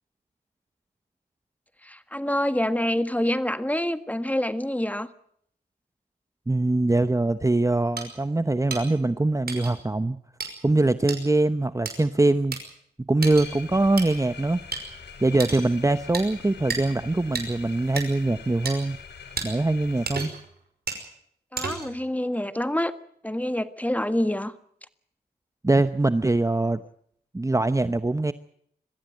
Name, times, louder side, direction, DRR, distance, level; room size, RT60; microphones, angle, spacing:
voice 1, 1.8-5.1 21.5-22.9 23.2-24.5, left 1 dB, 10° left, 11 dB, 1.6 m, -26 dB
voice 2, 6.5-10.2 10.6-12.6 13.1-14.6 15.2-19.0 19.4-20.3 25.6-26.8 27.3-28.3, right 2 dB, 20° right, 12 dB, 0.9 m, -23 dB
sound 1, 8.0-8.1 8.7-8.8 9.5-9.7 10.4-10.5 11.1-11.2 11.9-12.0 12.5-12.6 13.2-13.5 14.0-14.1 14.7-14.8 15.4-15.7 16.1-16.3 16.7-16.8 17.4-17.5 18.0-18.1 18.7-18.8 19.4-19.5 20.1-20.5 20.9-21.0 21.6-22.0, right 4 dB, 65° right, 5.5 m, -31 dB
sound 2, 13.2-20.3, left 6 dB, 75° left, 3.1 m, -44 dB
22.5 x 15.0 x 9.1 m, 0.68 s
cardioid pair, 45°, 17 cm